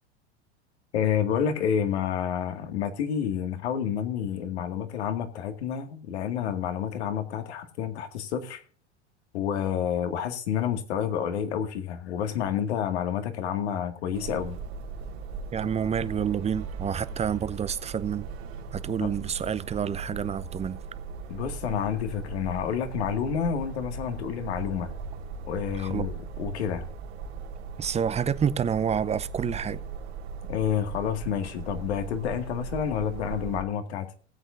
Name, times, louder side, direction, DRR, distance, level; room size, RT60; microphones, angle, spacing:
voice 1, 0.9-8.6 9.3-14.6 19.0-19.1 21.3-24.9 25.4-26.8 30.5-34.1, left 8 dB, 70° left, 2.0 m, -29 dB
sound 1, 14.1-33.6, right 5 dB, 70° right, 2.3 m, -38 dB
voice 2, 15.5-18.3 18.7-20.8 25.8-26.1 27.8-29.8, right 8 dB, 20° right, 0.7 m, -28 dB
20.0 x 8.3 x 2.6 m
hypercardioid pair, 90°, 34 cm